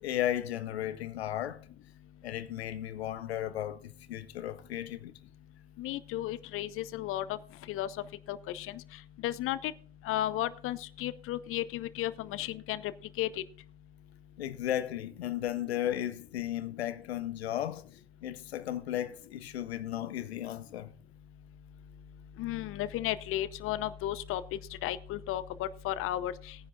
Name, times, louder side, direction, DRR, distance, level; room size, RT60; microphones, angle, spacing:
voice 1, 0.0-1.6 2.2-5.1 14.4-17.8 18.2-20.9, left 12 dB, 75° left, 0.8 m, -35 dB
voice 2, 5.8-7.4 7.7-7.9 8.3-8.8 9.2-9.7 10.0-12.8 13.2-13.3 22.4-24.4 24.8-26.5, left 13 dB, 45° left, 0.8 m, -34 dB
18.0 x 10.0 x 2.4 m
figure-of-eight pair, 70°, 32 cm